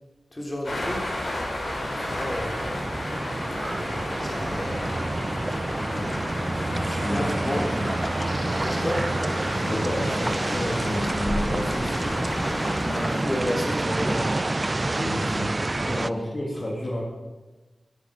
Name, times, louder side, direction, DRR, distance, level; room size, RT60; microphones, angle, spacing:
voice 1, 0.3-1.0 2.0-2.6 4.2-4.9 6.5-7.7 8.6-9.0 12.9-14.3 15.8-16.0, left 1 dB, 20° left, -1 dB, 3.3 m, -31 dB
sound 1, 0.6-13.2, left 1 dB, 60° left, 5.3 m, -32 dB
sound 2, 1.6-16.1, right 2 dB, 30° right, 0.4 m, -28 dB
voice 2, 6.5-8.2 9.5-12.2 15.0-15.6 16.0-17.0, equal, 40° left, -4 dB, 2.9 m, -31 dB
12.5 x 8.5 x 6.5 m, 1.1 s
wide cardioid pair, 85°, 0 cm